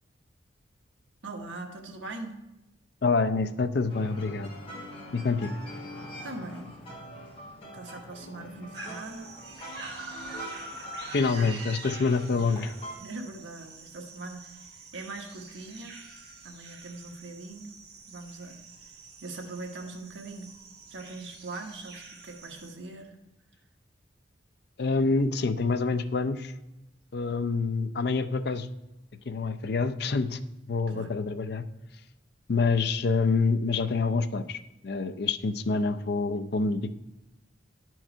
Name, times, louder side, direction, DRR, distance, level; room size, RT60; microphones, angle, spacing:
voice 1, 1.2-2.4 6.2-6.7 7.7-9.3 11.0-11.5 12.4-12.5 13.0-16.0 16.4-17.8 18.1-18.6 19.2-20.5 20.9-23.2 30.9-31.1, right 2 dB, 80° right, 2 dB, 1.2 m, -41 dB
voice 2, 3.0-4.5 5.1-5.5 8.3-8.5 11.1-12.7 24.8-26.5 27.1-28.7 29.3-30.4 30.7-31.6 32.5-34.6 34.8-36.9, left 4 dB, 60° left, 11 dB, 0.5 m, -27 dB
sound 1, 3.9-13.0, equal, 30° left, 1.6 m, -44 dB
sound 2, 8.7-22.7, right 3 dB, 60° right, 1.4 m, -45 dB
11.0 x 4.7 x 4.4 m, 0.99 s
head